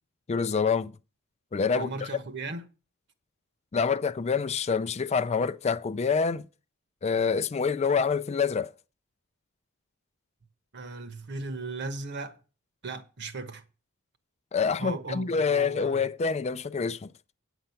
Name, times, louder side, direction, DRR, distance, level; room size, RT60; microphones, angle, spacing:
voice 1, 0.3-0.9 1.5-1.9 3.7-6.4 7.0-8.7 14.5-17.1, left 5 dB, 30° left, 0.4 m, -26 dB
voice 2, 1.7-2.6 10.7-12.4 12.8-13.6 14.8-16.0, right 3 dB, 55° right, 1.1 m, -37 dB
8.8 x 8.0 x 5.7 m
head